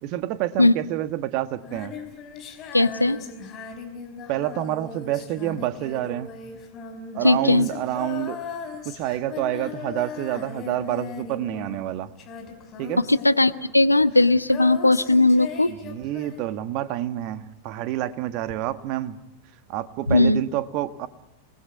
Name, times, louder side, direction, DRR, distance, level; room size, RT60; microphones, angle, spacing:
voice 1, 0.0-1.9 4.3-6.3 7.1-8.4 8.8-12.1 12.8-13.0 15.7-19.2 19.7-21.1, right 13 dB, 40° right, 13 dB, 1.4 m, -28 dB
Female singing, 1.6-17.0 18.5-18.6, left 6 dB, 30° left, 4.9 m, -38 dB
voice 2, 2.7-3.2 7.2-7.7 13.1-15.7 20.1-20.4, left 2 dB, 85° left, 15 dB, 0.8 m, -18 dB
28.0 x 20.0 x 9.4 m, 0.98 s
figure-of-eight pair, 90°, 0 cm